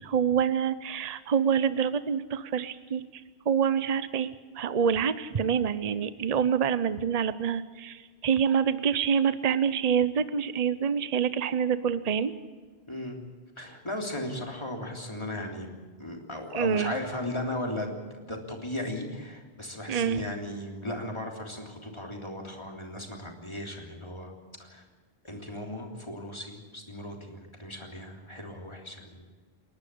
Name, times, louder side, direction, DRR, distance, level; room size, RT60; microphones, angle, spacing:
voice 1, 0.0-3.0 3.5-12.3 16.5-16.9 19.9-20.2, right 7 dB, 40° right, 14 dB, 0.8 m, -26 dB
voice 2, 12.9-13.2 13.6-15.7 16.0-24.3 24.6-24.8 25.2-29.2, left 1 dB, 25° left, 1 dB, 3.4 m, -36 dB
28.5 x 11.5 x 8.5 m, 1.4 s
omnidirectional pair, 1.1 m